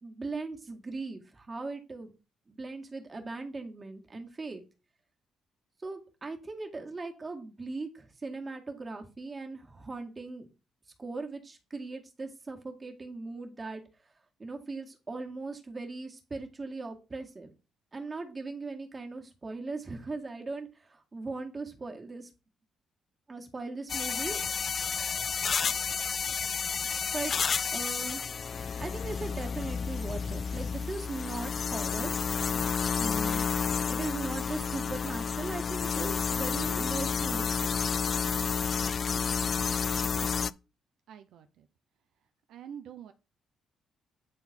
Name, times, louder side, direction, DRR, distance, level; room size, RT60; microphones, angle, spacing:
voice 1, 0.0-2.1 2.5-4.6 5.8-10.5 11.0-13.8 14.4-17.5 17.9-22.3 23.3-24.4 27.1-28.2 28.8-32.1 33.0-33.4 33.9-37.5, right 3 dB, 30° right, 3 dB, 1.9 m, -39 dB
sound 1, 23.9-40.5, left 6 dB, 45° left, 0.3 m, -30 dB
voice 2, 41.1-41.7 42.5-43.1, right 8 dB, 80° right, 8 dB, 0.6 m, -46 dB
9.0 x 3.9 x 4.4 m, 0.31 s
cardioid pair, 90°, 0 cm